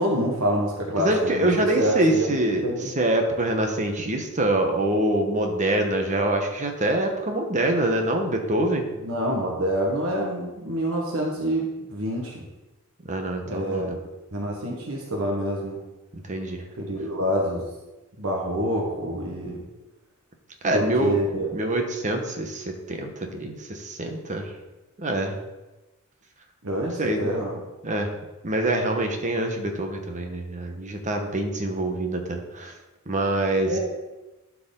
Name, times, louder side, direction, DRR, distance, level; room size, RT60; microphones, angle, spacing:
voice 1, 0.0-1.5 1.8-2.3 2.6-2.9 9.0-12.4 13.4-13.9 14.3-15.8 16.8-17.7 18.2-19.6 20.7-21.5 26.6-27.5 33.7-33.8, equal, 80° right, -1 dB, 1.3 m, -26 dB
voice 2, 1.0-8.8 13.1-14.0 16.1-16.6 20.6-21.2 21.5-24.5 25.0-25.4 27.0-27.4 27.8-28.1 28.4-32.7 33.1-33.8, right 1 dB, 35° right, 3 dB, 1.1 m, -25 dB
12.0 x 4.7 x 3.8 m, 1.1 s
head